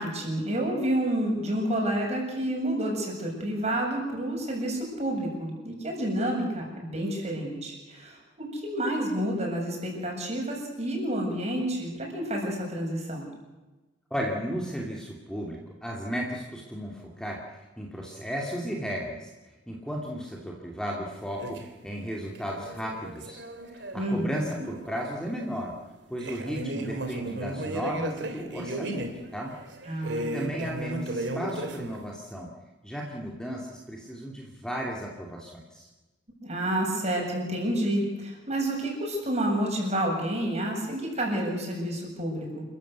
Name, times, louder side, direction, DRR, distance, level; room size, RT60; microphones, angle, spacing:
voice 1, 0.0-13.3 24.0-24.4 29.9-30.5 36.4-42.6, right 1 dB, 40° right, 0 dB, 7.6 m, -29 dB
voice 2, 14.1-19.3 19.7-23.4 23.7-25.7 26.1-29.5 29.9-32.5 32.8-35.9, equal, 5° left, -1 dB, 2.7 m, -34 dB
sound 1, 21.4-21.9 22.3-25.9 26.2-32.1, right 1 dB, 70° right, 3.1 m, -36 dB
28.5 x 14.5 x 8.2 m, 1.1 s
head